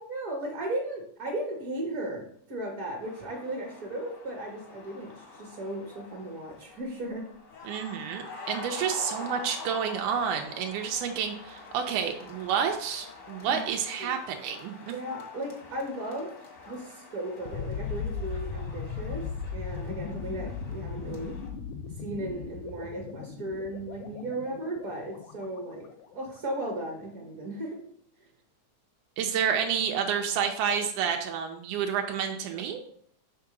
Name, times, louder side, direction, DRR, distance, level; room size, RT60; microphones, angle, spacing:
voice 1, 0.1-7.3 13.4-13.7 14.0-14.1 14.9-16.3 16.7-19.2 19.5-21.4 21.9-25.9 26.1-27.8, right 1 dB, 60° right, -1 dB, 0.9 m, -36 dB
sound 1, 3.0-21.5, left 3 dB, 70° left, 0.7 m, -46 dB
voice 2, 7.6-14.9 29.2-32.8, right 7 dB, 85° right, 4 dB, 2.1 m, -29 dB
sound 2, 17.5-26.3, left 6 dB, 90° left, 2.2 m, -37 dB
5.3 x 3.7 x 5.9 m, 0.62 s
omnidirectional pair, 3.4 m